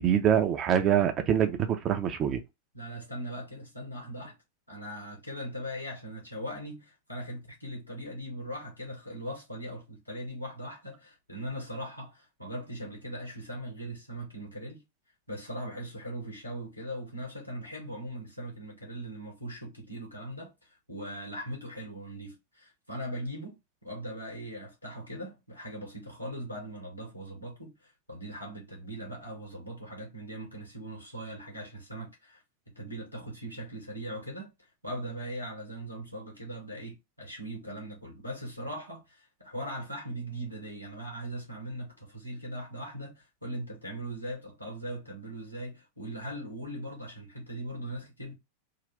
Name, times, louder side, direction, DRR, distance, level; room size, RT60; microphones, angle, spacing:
voice 1, 0.0-2.4, right 9 dB, 30° right, 0.8 m, -25 dB
voice 2, 2.7-4.4 4.7-14.8 15.3-20.5 20.9-23.6 23.8-32.4 32.8-34.5 34.8-48.3, right 1 dB, 90° left, 2.1 m, -40 dB
3.8 x 2.6 x 3.4 m
figure-of-eight pair, 90°, 0 cm